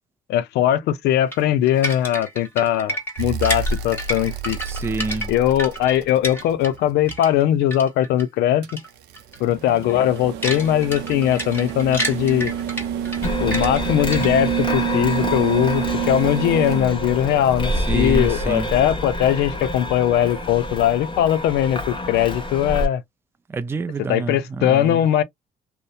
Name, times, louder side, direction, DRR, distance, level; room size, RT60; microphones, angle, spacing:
voice 1, 0.3-4.6 5.3-8.8 9.4-12.5 13.4-23.0 24.1-25.2, left 11 dB, 80° left, 0.5 m, -20 dB
sound 1, 1.3-6.8 7.1-8.2 8.7-8.9 9.1-9.4 9.8-14.6, equal, 10° left, 1.3 m, -30 dB
sound 2, 3.2-7.4 8.6-19.8 21.4-21.5, right 8 dB, 85° right, 0.6 m, -29 dB
voice 2, 4.6-5.3 17.8-18.7 23.5-25.0, right 4 dB, 15° right, 0.3 m, -27 dB
sound 3, 13.2-22.9, left 1 dB, 30° left, 1.0 m, -27 dB
2.7 x 2.1 x 2.3 m
cardioid pair, 110°, 17 cm